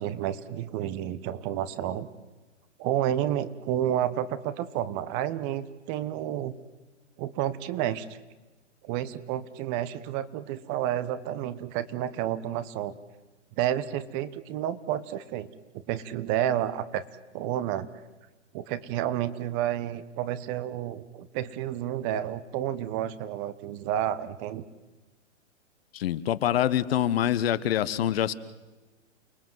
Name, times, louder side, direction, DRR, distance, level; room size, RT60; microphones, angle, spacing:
voice 1, 0.0-2.1 2.8-6.5 7.2-8.0 8.8-13.0 13.6-15.5 15.9-17.0 17.3-17.9 18.5-24.6, right 11 dB, 30° right, 14 dB, 1.3 m, -30 dB
voice 2, 25.9-28.3, left 11 dB, 55° left, 15 dB, 1.2 m, -25 dB
29.5 x 20.5 x 7.8 m, 1.2 s
hypercardioid pair, 125°, 36 cm